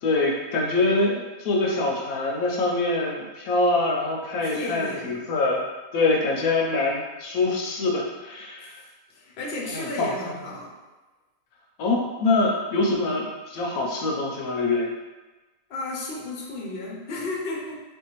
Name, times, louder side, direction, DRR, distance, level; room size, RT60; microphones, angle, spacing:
voice 1, 0.0-5.6 5.9-8.8 9.7-10.3 11.8-14.9, left 2 dB, 75° left, -1 dB, 1.0 m, -24 dB
voice 2, 4.4-5.2 8.6-8.7 9.1-10.8 15.7-17.8, left 2 dB, 55° left, -2 dB, 0.7 m, -33 dB
3.8 x 2.6 x 2.9 m, 1.2 s
omnidirectional pair, 1.6 m